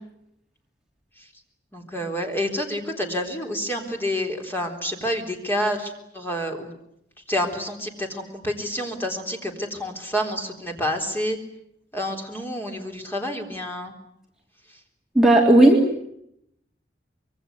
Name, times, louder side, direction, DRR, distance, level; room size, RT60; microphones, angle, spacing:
voice 1, 1.7-6.7 7.3-11.4 11.9-13.9, equal, 10° left, 3 dB, 3.9 m, -28 dB
voice 2, 15.1-16.1, right 1 dB, 5° right, -1 dB, 3.1 m, -15 dB
25.5 x 23.0 x 9.5 m, 0.76 s
head